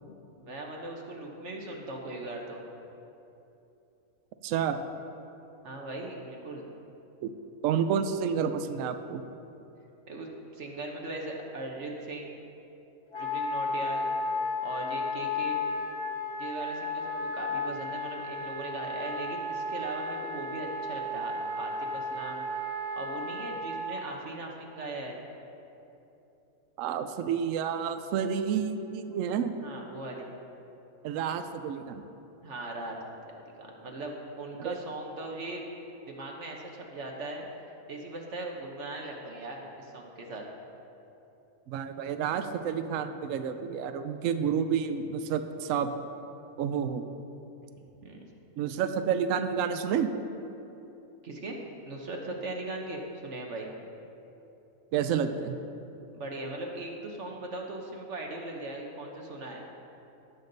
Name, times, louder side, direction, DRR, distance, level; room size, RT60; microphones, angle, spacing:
voice 1, 0.4-2.6 5.6-6.7 10.1-12.3 13.2-14.1 14.6-15.6 16.4-22.4 23.0-25.2 29.6-30.3 32.4-33.0 33.2-35.6 36.0-37.5 37.9-40.4 48.0-48.2 51.2-51.6 51.8-53.7 56.1-59.6, right 2 dB, 55° right, 1 dB, 1.3 m, -39 dB
voice 2, 4.4-4.8 7.2-7.3 7.6-9.2 26.8-29.5 31.0-32.0 34.6-34.8 41.7-45.9 46.6-47.0 48.6-50.1 54.9-55.6, right 7 dB, 75° right, 9 dB, 0.9 m, -29 dB
Wind instrument woodwind instrument, 13.1-23.9, left 2 dB, 20° left, 1.1 m, -33 dB
18.0 x 7.1 x 4.0 m, 2.9 s
omnidirectional pair, 1.5 m